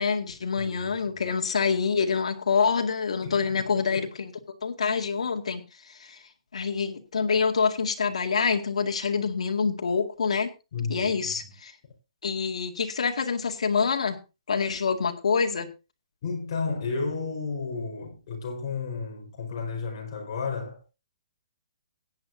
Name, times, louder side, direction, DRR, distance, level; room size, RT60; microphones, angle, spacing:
voice 1, 0.0-4.3 4.6-6.2 6.5-10.5 10.9-11.7 12.2-14.2 14.5-15.7, left 5 dB, 80° left, 2.1 m, -26 dB
voice 2, 0.6-0.9 3.2-4.1 10.7-11.3 16.2-20.9, left 4 dB, 45° left, 4.8 m, -33 dB
16.5 x 10.0 x 2.7 m
hypercardioid pair, 165°, 3 cm